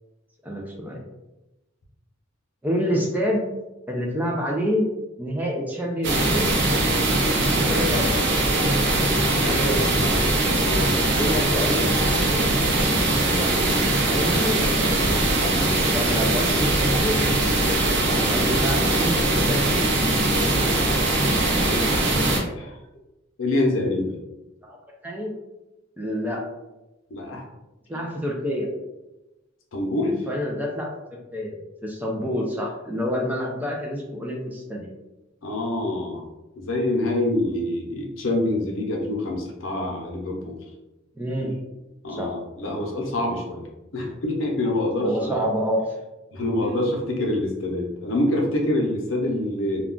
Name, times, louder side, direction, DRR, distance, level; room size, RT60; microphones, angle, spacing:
voice 1, 0.4-1.0 2.6-3.4 3.9-4.8 5.2-6.6 7.3-8.3 9.4-9.9 11.1-11.9 13.3-13.7 14.1-14.6 15.9-17.3 18.2-19.7 24.6-24.8 25.0-25.3 26.0-26.4 27.9-28.7 30.1-30.9 31.3-31.6 31.8-34.9 41.2-41.6 42.1-42.3 45.0-45.9 46.6-46.8, equal, 10° right, -1 dB, 0.4 m, -27 dB
sound 1, 6.0-22.4, right 2 dB, 55° right, 0.6 m, -21 dB
voice 2, 10.7-11.0 13.3-13.8 15.5-15.8 22.6-22.8 23.4-24.1 27.1-27.4 29.7-30.2 35.4-36.2 36.6-40.6 42.0-43.6 43.9-45.5 46.3-49.8, left 1 dB, 70° left, 0 dB, 0.7 m, -26 dB
2.3 x 2.3 x 3.7 m, 1.0 s
head